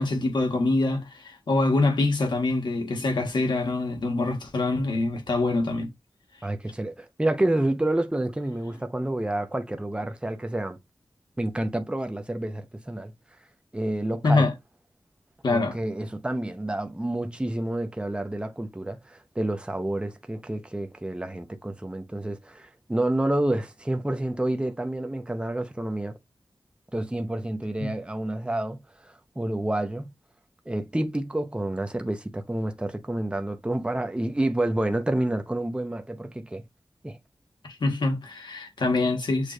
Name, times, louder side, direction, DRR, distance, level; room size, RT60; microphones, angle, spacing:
voice 1, 0.0-5.9 14.2-14.5 15.4-15.8 27.8-27.9 37.6-39.5, left 2 dB, 80° left, 1.6 m, -25 dB
voice 2, 6.4-10.8 11.4-13.1 13.7-14.5 15.5-26.2 26.9-30.1 30.7-36.6 37.0-37.2, right 1 dB, 15° right, 0.8 m, -29 dB
6.6 x 2.5 x 3.2 m
cardioid pair, 45°, 8 cm